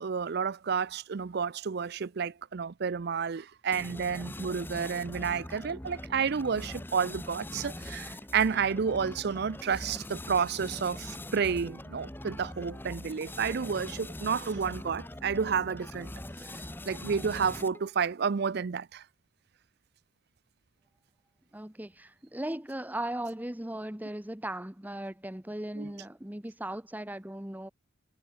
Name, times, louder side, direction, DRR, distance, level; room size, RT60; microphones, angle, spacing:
voice 1, 0.0-16.1 16.9-19.0 25.8-25.9, right 6 dB, 50° right, 0.5 m, -30 dB
sound 1, 3.7-17.9, left 1 dB, 10° left, 1.0 m, -42 dB
voice 2, 21.5-27.7, right 1 dB, 10° right, 1.0 m, -37 dB
head